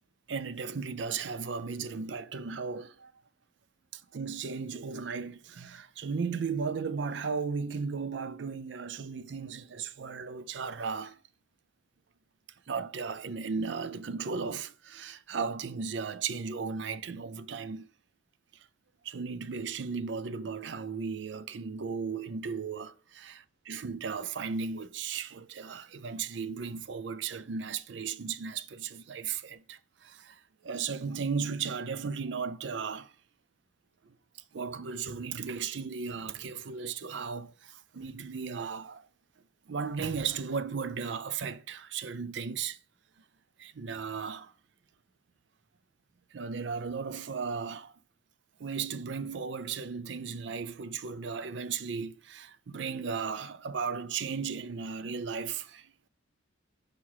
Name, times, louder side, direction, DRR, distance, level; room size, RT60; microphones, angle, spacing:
voice 1, 0.3-3.1 3.9-11.2 12.7-17.9 19.0-23.2 23.7-33.1 34.1-34.2 34.5-39.1 39.7-42.8 43.6-44.5 46.3-47.9 48.6-55.9, right 5 dB, 65° right, 0.5 m, -35 dB
5.0 x 4.7 x 5.5 m
head